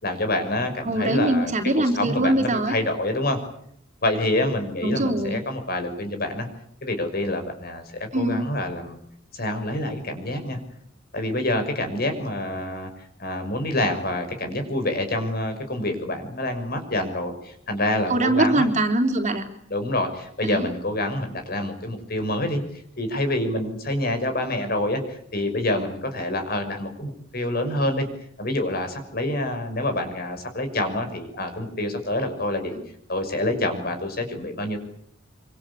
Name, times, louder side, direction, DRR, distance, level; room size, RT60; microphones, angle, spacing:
voice 1, 0.0-1.5 1.9-3.4 4.0-6.5 6.8-9.0 9.3-10.6 11.1-12.9 13.2-18.7 19.7-28.1 28.4-32.7 33.1-34.8, left 1 dB, 50° left, 7 dB, 6.1 m, -27 dB
voice 2, 0.8-2.7 4.8-5.4 8.1-8.5 18.1-19.4 20.4-20.7 32.7-32.8, right 1 dB, 40° right, 4 dB, 3.7 m, -22 dB
26.0 x 26.0 x 8.5 m, 0.70 s
head